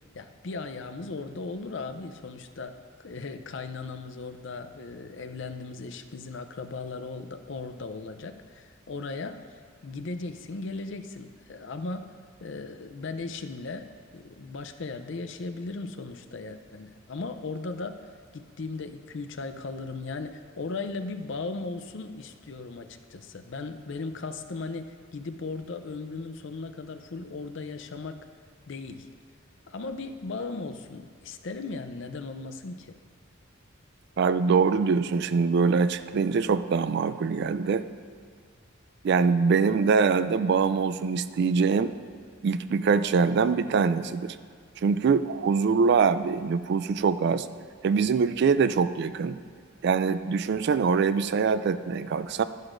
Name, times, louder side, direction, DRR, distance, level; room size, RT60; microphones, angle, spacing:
voice 1, 0.1-9.4 9.8-12.1 12.4-18.1 18.3-28.3 28.7-29.1 29.7-33.0, left 3 dB, 60° left, 9 dB, 0.5 m, -37 dB
voice 2, 34.2-37.8 39.0-41.9 42.4-44.4 44.8-47.5 47.8-49.4 49.8-52.4, right 5 dB, 55° right, 13 dB, 0.3 m, -23 dB
11.5 x 10.5 x 2.6 m, 2.1 s
head